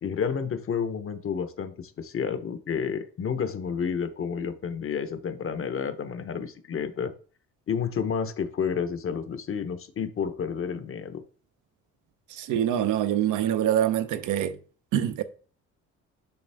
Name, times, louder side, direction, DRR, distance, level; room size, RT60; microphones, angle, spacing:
voice 1, 0.0-7.1 7.7-11.2, left 6 dB, 45° left, 0.9 m, -30 dB
voice 2, 12.3-14.6 14.9-15.2, right 11 dB, 90° right, 0.7 m, -25 dB
7.0 x 5.0 x 3.4 m
cardioid pair, 90°, 30 cm